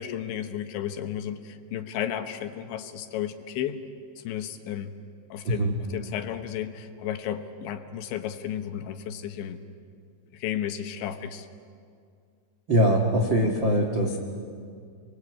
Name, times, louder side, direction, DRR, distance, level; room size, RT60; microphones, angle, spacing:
voice 1, 0.0-3.8 4.2-5.0 5.3-9.6 10.3-11.5, left 10 dB, 75° left, 7 dB, 3.4 m, -33 dB
voice 2, 5.4-5.8 12.7-14.2, equal, 65° right, 1 dB, 1.1 m, -22 dB
29.5 x 23.0 x 8.4 m, 2.3 s
omnidirectional pair, 5.5 m